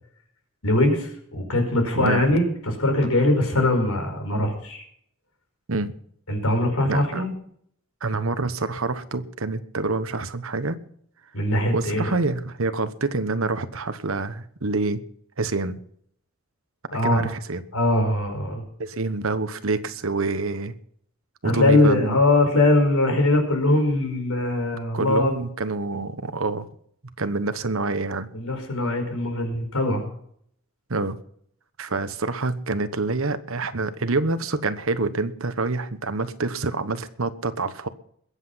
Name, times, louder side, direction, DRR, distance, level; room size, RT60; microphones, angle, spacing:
voice 1, 0.6-4.8 6.3-7.3 11.3-12.2 16.9-17.3 17.7-18.6 21.4-25.3 28.3-30.1, left 1 dB, 80° left, 4 dB, 5.0 m, -21 dB
voice 2, 1.9-2.4 5.7-5.9 6.9-7.2 8.0-10.8 11.7-15.0 15.4-15.8 16.9-17.6 18.8-20.7 21.4-22.2 24.9-26.7 27.2-28.3 30.9-31.2 31.8-37.9, right 3 dB, 70° right, 12 dB, 1.1 m, -27 dB
21.5 x 8.3 x 5.7 m, 0.65 s
head